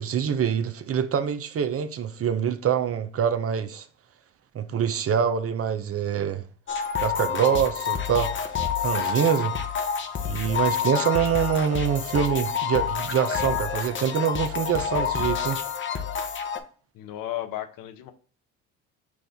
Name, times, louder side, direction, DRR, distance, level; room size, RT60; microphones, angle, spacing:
voice 1, 0.0-3.9 4.5-6.4 7.0-8.3 8.8-9.5 10.3-15.6, right 8 dB, 40° right, 0.6 m, -25 dB
sound 1, 6.7-16.6, left 7 dB, 35° left, 0.8 m, -28 dB
voice 2, 16.9-18.1, left 13 dB, 65° left, 0.8 m, -34 dB
6.2 x 2.5 x 3.5 m
hypercardioid pair, 65°, 36 cm